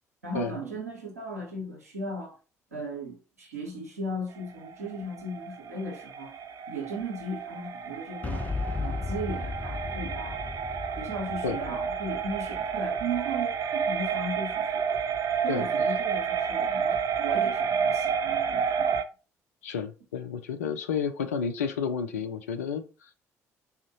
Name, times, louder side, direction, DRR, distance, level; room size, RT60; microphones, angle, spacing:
voice 1, 0.2-2.4 2.7-6.3 6.7-8.5 8.8-10.4 11.0-14.9 15.4-19.0, right 1 dB, 85° right, 0.7 m, -36 dB
sound 1, 4.4-19.0, right 7 dB, 45° right, 0.4 m, -30 dB
Boom, 8.2-14.1, left 3 dB, 20° left, 0.5 m, -36 dB
voice 2, 19.6-22.8, left 6 dB, 75° left, 0.4 m, -31 dB
3.7 x 2.1 x 2.7 m
figure-of-eight pair, 50°, 8 cm